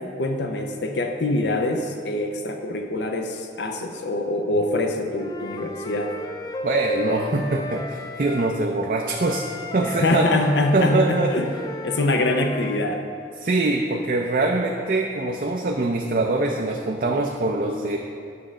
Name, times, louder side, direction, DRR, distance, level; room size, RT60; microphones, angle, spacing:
voice 1, 0.0-6.1 9.8-11.5 11.8-13.0, left 2 dB, 75° left, 4 dB, 0.5 m, -24 dB
Wind instrument woodwind instrument, 5.2-8.5 9.0-12.8, left 1 dB, 20° left, 0.3 m, -33 dB
voice 2, 6.6-9.5 9.7-10.3 10.7-11.3 13.4-18.0, right 2 dB, 50° right, 1 dB, 0.4 m, -23 dB
8.8 x 3.2 x 6.2 m, 2.3 s
head